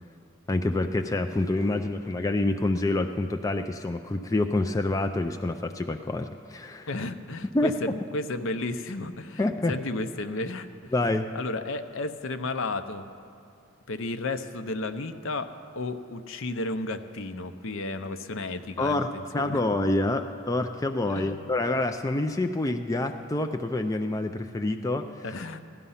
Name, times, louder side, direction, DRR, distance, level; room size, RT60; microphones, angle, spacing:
voice 1, 0.5-6.9 7.5-7.7 9.4-9.7 10.9-11.3 18.8-19.1 19.3-25.1, left 2 dB, 15° left, 5 dB, 0.3 m, -27 dB
voice 2, 6.9-9.4 9.7-10.9 11.3-13.1 13.9-19.6 21.1-21.5 25.2-25.6, left 2 dB, 65° left, 9 dB, 0.7 m, -33 dB
16.0 x 12.0 x 5.6 m, 2.4 s
head